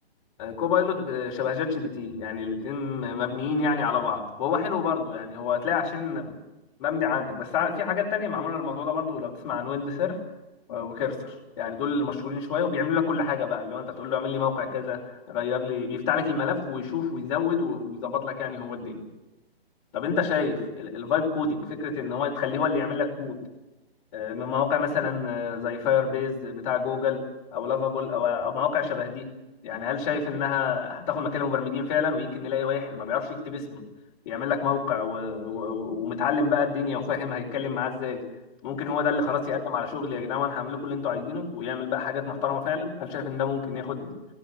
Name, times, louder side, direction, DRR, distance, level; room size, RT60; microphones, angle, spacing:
voice 1, 0.4-6.3 6.8-10.2 10.7-19.1 19.9-23.4 24.1-27.2 27.5-29.3 29.6-33.8 34.3-38.2 38.6-44.1, left 6 dB, 35° left, 0 dB, 5.0 m, -28 dB
18.5 x 17.0 x 9.0 m, 1.0 s
figure-of-eight pair, 135°, 31 cm